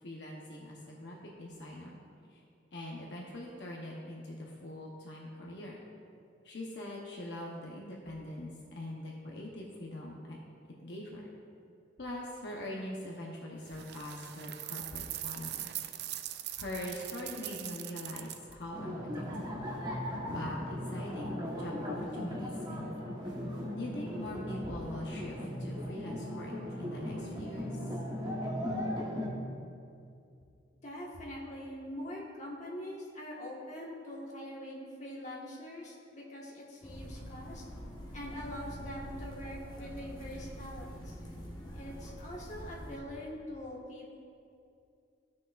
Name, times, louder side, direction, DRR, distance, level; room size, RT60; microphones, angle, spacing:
voice 1, 0.0-2.0 2.3-2.4 2.7-5.8 6.4-10.4 10.8-11.2 12.0-15.7 16.6-19.7 20.3-22.9 23.7-26.5 26.8-27.9, left 1 dB, 70° left, -3 dB, 0.9 m, -42 dB
sound 1, 13.7-18.5, right 13 dB, 65° right, 0.4 m, -41 dB
sound 2, 18.7-29.3, left 1 dB, 25° right, 1.2 m, -38 dB
voice 2, 30.8-37.6 38.1-41.1 41.7-44.1, left 1 dB, 40° left, -4 dB, 1.5 m, -43 dB
sound 3, 36.8-43.0, equal, 25° left, 1.3 m, -45 dB
15.0 x 6.3 x 2.5 m, 2.5 s
head